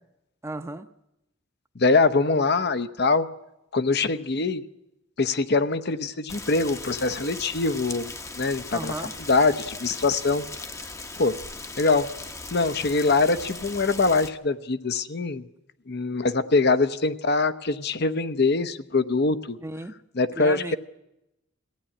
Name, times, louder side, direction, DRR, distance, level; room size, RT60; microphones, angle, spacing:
voice 1, 0.4-0.9 8.7-9.1 19.6-19.9 20.4-20.8, right 2 dB, 15° right, 0.8 m, -34 dB
voice 2, 1.8-3.3 3.7-4.6 5.2-8.1 8.4-8.9 9.3-10.4 11.2-11.4 11.8-12.1 12.5-15.4 15.9-19.6 20.1-20.8, left 3 dB, 55° left, 0.8 m, -23 dB
Rain, 6.3-14.3, left 3 dB, 15° left, 0.9 m, -38 dB
22.0 x 16.0 x 9.9 m
head